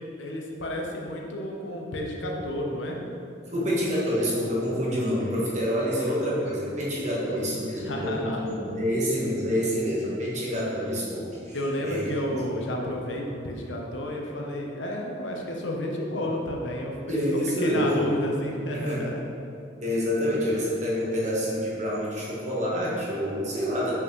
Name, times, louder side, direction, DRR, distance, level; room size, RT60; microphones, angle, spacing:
voice 1, 0.0-3.0 7.7-8.5 11.5-19.2, left 1 dB, 85° left, 0 dB, 0.8 m, -31 dB
voice 2, 3.5-11.6 11.8-12.0 17.1-18.1 18.7-19.1 19.8-24.0, equal, 40° right, -6 dB, 1.3 m, -27 dB
5.9 x 5.7 x 3.1 m, 2.6 s
head